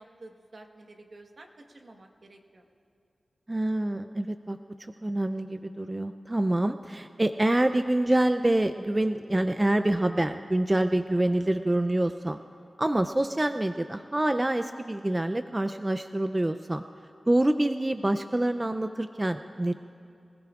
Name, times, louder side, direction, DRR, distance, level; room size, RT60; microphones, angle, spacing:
voice 1, 0.0-2.6, right 2 dB, 65° right, 3 dB, 1.3 m, -50 dB
voice 2, 3.5-4.6 5.0-12.4 12.8-16.8 17.3-19.7, right 1 dB, 25° right, 9 dB, 0.4 m, -26 dB
25.5 x 15.5 x 2.4 m, 2.5 s
cardioid pair, 40°, 0 cm